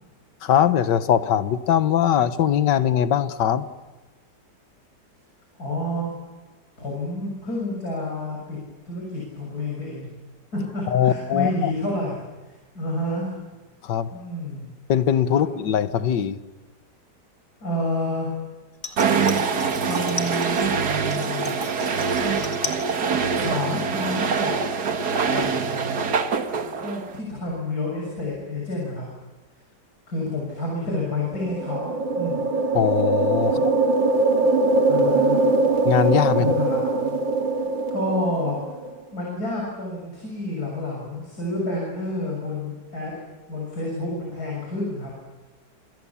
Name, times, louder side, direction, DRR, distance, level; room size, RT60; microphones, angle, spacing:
voice 1, 0.4-3.7 10.9-11.7 13.8-14.1 14.9-16.4 32.7-33.6 35.9-36.6, left 9 dB, 75° left, 12 dB, 1.8 m, -21 dB
voice 2, 5.6-6.1 6.8-8.6 8.9-10.1 10.5-13.4 14.1-14.7 15.3-15.5 17.6-18.3 19.8-20.6 21.1-21.9 23.3-24.5 25.2-26.0 26.8-29.1 30.1-32.4 34.9-35.5 36.4-37.2 37.6-37.7 37.9-38.6 39.1-43.1 43.5-45.1, left 1 dB, 55° left, -2 dB, 7.3 m, -29 dB
sound 1, 18.7-20.7 21.1-22.9 23.2-23.8 24.1-24.2, left 3 dB, 25° left, 2.0 m, -36 dB
sound 2, 19.0-27.2, right 5 dB, 60° right, 2.0 m, -24 dB
sound 3, 31.3-38.9, right 2 dB, 85° right, 2.8 m, -22 dB
27.5 x 26.5 x 7.2 m, 1.2 s
omnidirectional pair, 2.0 m